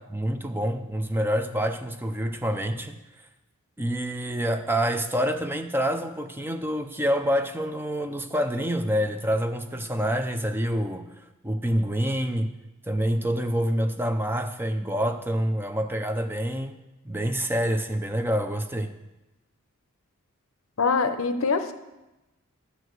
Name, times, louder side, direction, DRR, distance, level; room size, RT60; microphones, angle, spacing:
voice 1, 0.0-3.0 3.8-11.1 11.4-12.5 12.9-16.8 17.1-19.0, equal, 10° right, 7 dB, 0.4 m, -27 dB
voice 2, 20.8-21.7, left 4 dB, 65° left, 9 dB, 0.7 m, -24 dB
11.5 x 4.7 x 7.9 m, 1.0 s
head